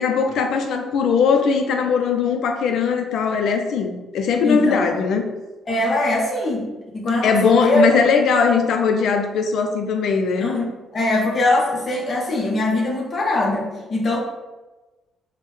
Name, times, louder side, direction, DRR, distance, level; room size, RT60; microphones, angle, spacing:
voice 1, 0.0-5.3 7.2-10.5, left 5 dB, 75° left, 5 dB, 0.4 m, -20 dB
voice 2, 4.4-4.9 5.7-6.7 6.9-7.8 10.4-14.2, left 2 dB, 45° left, -2 dB, 0.7 m, -22 dB
3.1 x 2.1 x 3.1 m, 1.1 s
cardioid pair, 90°, 0 cm